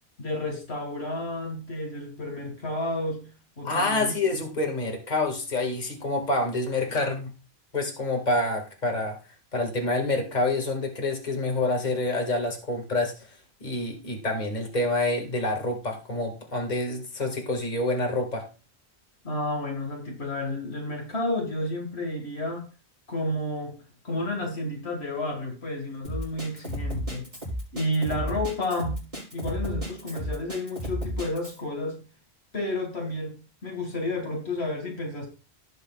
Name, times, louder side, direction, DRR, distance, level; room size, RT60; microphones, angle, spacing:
voice 1, 0.2-3.3 3.6-4.1 19.2-22.7 23.1-27.3 27.7-29.0 29.3-32.0 32.5-35.3, left 1 dB, 75° left, 2.1 m, -31 dB
voice 2, 3.6-7.3 7.7-9.2 9.5-13.3 13.6-18.5, left 2 dB, 40° left, 2.1 m, -27 dB
Drum kit, 26.0-31.6, equal, 40° right, 5.8 m, -33 dB
18.0 x 6.6 x 2.4 m
omnidirectional pair, 1.1 m